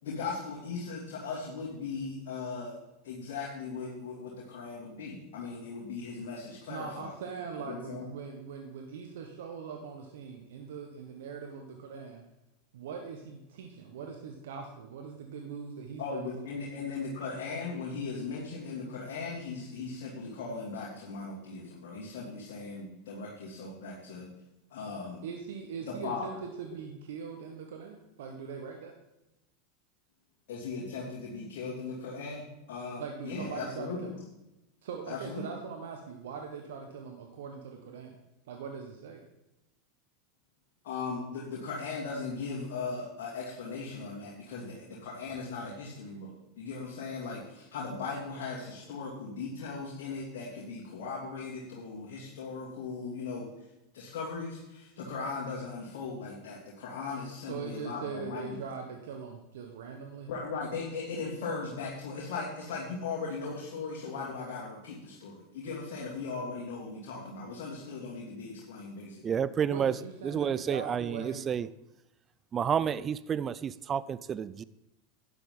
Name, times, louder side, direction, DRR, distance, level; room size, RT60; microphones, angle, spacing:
voice 1, 0.0-2.7 3.0-7.1 7.7-8.0 16.0-24.3 24.7-25.2 25.9-26.3 30.5-34.2 35.1-35.4 40.8-53.5 53.9-58.6 60.3-69.2, left 4 dB, 65° left, -5 dB, 2.9 m, -38 dB
voice 2, 6.7-12.2 12.7-16.7 25.2-28.9 33.0-34.2 34.8-38.2 38.5-39.2 57.5-60.3 69.7-71.5, right 6 dB, 70° right, 3 dB, 1.4 m, -41 dB
voice 3, 69.2-71.7 72.5-74.6, right 8 dB, 30° right, 18 dB, 0.4 m, -30 dB
11.5 x 9.8 x 3.9 m, 0.94 s
hypercardioid pair, 90°, 0 cm